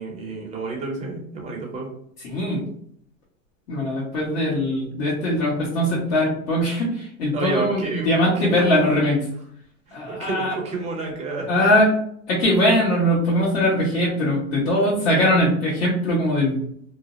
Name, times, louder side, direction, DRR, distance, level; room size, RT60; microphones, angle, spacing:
voice 1, 0.0-1.9 7.3-8.7 9.9-11.5, right 3 dB, 15° right, -1 dB, 0.5 m, -30 dB
voice 2, 2.2-2.6 3.7-9.2 9.9-10.5 11.5-11.9 12.3-16.6, left 1 dB, 60° left, -9 dB, 1.2 m, -21 dB
2.5 x 2.0 x 2.5 m, 0.66 s
supercardioid pair, 130°, 41 cm